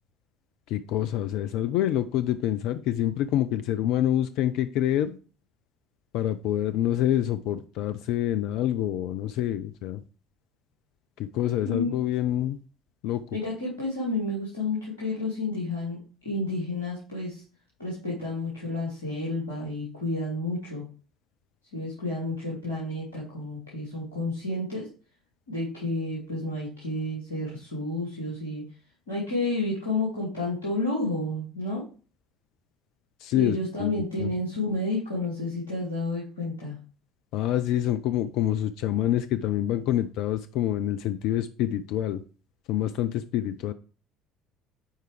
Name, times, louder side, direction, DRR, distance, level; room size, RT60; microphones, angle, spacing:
voice 1, 0.7-5.2 6.1-10.0 11.2-12.6 13.0-13.2 33.2-33.9 34.2-34.3 37.3-42.2 42.7-43.7, left 12 dB, 55° left, 11 dB, 0.4 m, -26 dB
voice 2, 11.6-11.9 13.3-16.0 16.2-17.4 17.8-20.8 21.7-24.9 25.5-28.6 29.1-31.8 33.3-36.8, left 2 dB, 80° left, -5 dB, 2.3 m, -30 dB
8.9 x 4.6 x 3.3 m, 0.38 s
figure-of-eight pair, 60°, 0 cm